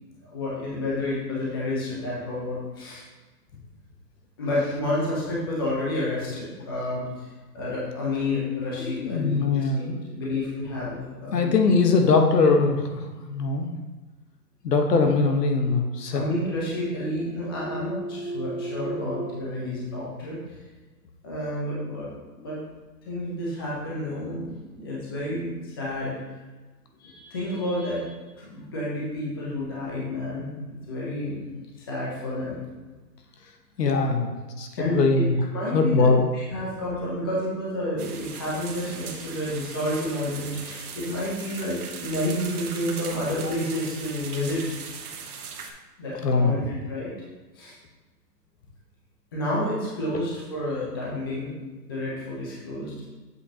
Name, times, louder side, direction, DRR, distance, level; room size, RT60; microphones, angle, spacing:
voice 1, 0.2-3.0 4.4-7.3 7.5-11.5 16.1-20.6 21.2-22.6 23.1-26.1 27.0-31.6 31.9-32.6 33.8-34.1 34.8-35.2 35.5-44.8 46.0-47.1 47.5-47.8 49.3-51.5 51.9-52.9, left 1 dB, 15° left, -6 dB, 0.7 m, -30 dB
voice 2, 8.8-10.0 11.3-13.7 14.6-16.2 33.8-34.3 34.6-35.4 35.7-36.2 46.2-46.5, left 4 dB, 70° left, 4 dB, 1.2 m, -21 dB
sound 1, 15.7-19.4, right 2 dB, 80° right, 1.2 m, -36 dB
sound 2, 38.0-45.7, right 6 dB, 60° right, 1.0 m, -39 dB
7.7 x 5.5 x 2.8 m, 1.3 s
hypercardioid pair, 170°, 49 cm